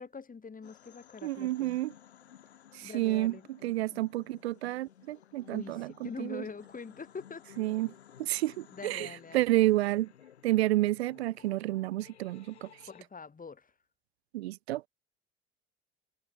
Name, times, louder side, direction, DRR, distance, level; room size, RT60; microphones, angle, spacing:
voice 1, 0.0-1.8 2.8-3.5 5.5-7.4 8.7-9.4 12.9-13.7, left 5 dB, 25° left, 7.4 m, -44 dB
sound 1, 0.6-13.0, left 9 dB, 80° left, 5.7 m, -56 dB
voice 2, 1.2-1.9 2.7-6.4 7.6-7.9 8.2-10.1 10.4-12.7 14.3-14.9, right 16 dB, 75° right, 1.1 m, -30 dB
figure-of-eight pair, 65°, 32 cm